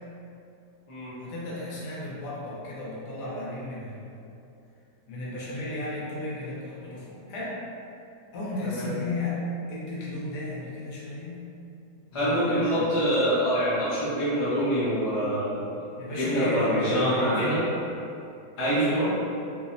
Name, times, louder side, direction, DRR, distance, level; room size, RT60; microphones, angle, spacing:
voice 1, 1.2-4.2 5.1-7.6 8.3-9.4 9.7-11.4 12.1-12.9 16.0-17.4 18.6-19.0, left 2 dB, 75° left, -6 dB, 1.2 m, -34 dB
voice 2, 12.1-15.7 16.1-17.6 18.6-19.1, equal, 35° left, -11 dB, 0.5 m, -25 dB
3.1 x 2.0 x 2.5 m, 2.6 s
omnidirectional pair, 1.8 m